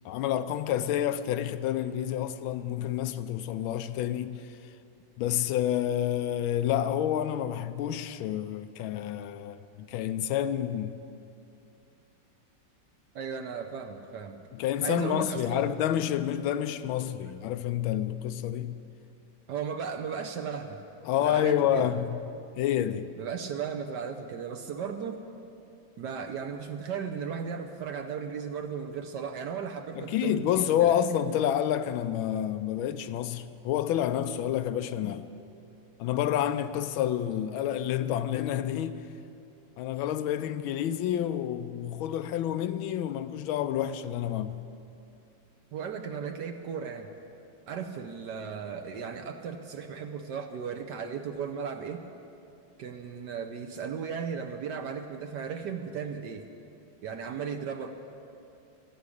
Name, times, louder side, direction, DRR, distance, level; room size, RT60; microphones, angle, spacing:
voice 1, 0.0-4.4 5.2-10.9 14.5-18.8 21.1-22.2 22.6-23.1 30.0-35.3 36.0-39.0 39.8-44.7, left 10 dB, 85° left, 1.4 m, -29 dB
voice 2, 13.1-14.4 14.8-15.6 19.5-20.8 21.2-21.9 23.2-25.2 26.0-31.0 45.7-47.1 47.7-52.1 52.8-56.5 57.0-57.9, right 6 dB, 65° right, 1.3 m, -36 dB
13.5 x 11.5 x 8.4 m
omnidirectional pair, 2.2 m